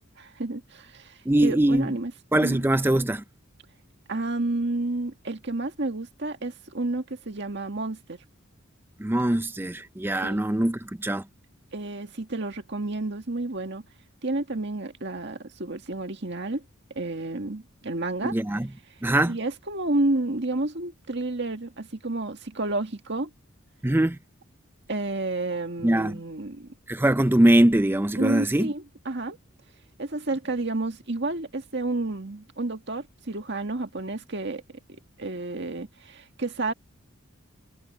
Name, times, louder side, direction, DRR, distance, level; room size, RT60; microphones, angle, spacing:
voice 1, 0.2-2.1 2.4-2.7 4.1-8.2 10.2-10.5 11.7-13.9 14.2-16.6 17.0-18.4 19.2-23.3 24.9-26.7 28.2-29.4 30.0-34.6 34.9-36.7, right 2 dB, 55° right, 1.9 m, -30 dB
voice 2, 1.3-1.9 2.3-3.2 9.0-11.2 18.2-18.7 19.0-19.4 23.8-24.2 25.8-26.2 26.9-28.7, right 1 dB, 10° right, 0.4 m, -22 dB
head